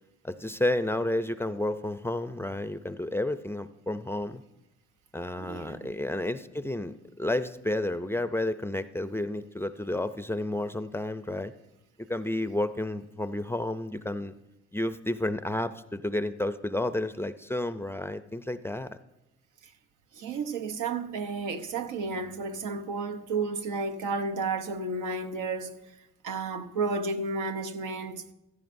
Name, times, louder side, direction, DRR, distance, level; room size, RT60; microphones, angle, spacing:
voice 1, 0.2-4.4 5.1-11.5 12.1-14.3 14.7-19.0, left 1 dB, 10° left, 0.4 m, -31 dB
voice 2, 5.4-5.9 20.1-25.8 26.2-28.2, right 3 dB, 85° right, 0.9 m, -32 dB
16.0 x 14.0 x 2.6 m
cardioid pair, 90°, 30 cm